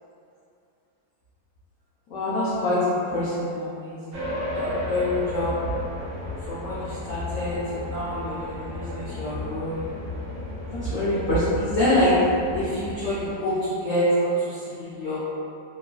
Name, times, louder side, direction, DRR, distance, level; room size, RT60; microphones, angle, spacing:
voice 1, 2.1-5.6 6.5-9.9 10.7-12.2 12.5-15.2, left 1 dB, 80° left, -11 dB, 0.7 m, -26 dB
sound 1, 4.1-13.3, left 1 dB, 70° right, 1.1 m, -33 dB
3.1 x 2.1 x 2.3 m, 2.5 s
omnidirectional pair, 1.9 m